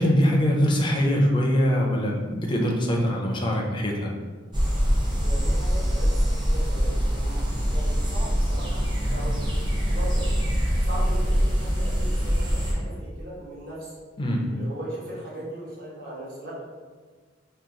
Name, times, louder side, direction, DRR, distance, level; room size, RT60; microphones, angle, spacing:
voice 1, 0.0-4.1 14.2-14.4, equal, 25° left, 0 dB, 0.4 m, -22 dB
sound 1, 4.5-12.7, equal, 25° right, 0.6 m, -24 dB
voice 2, 5.2-7.4 7.7-9.4 9.9-10.3 10.8-13.9 14.5-16.6, right 1 dB, 50° right, -8 dB, 1.1 m, -38 dB
2.9 x 2.2 x 3.7 m, 1.5 s
head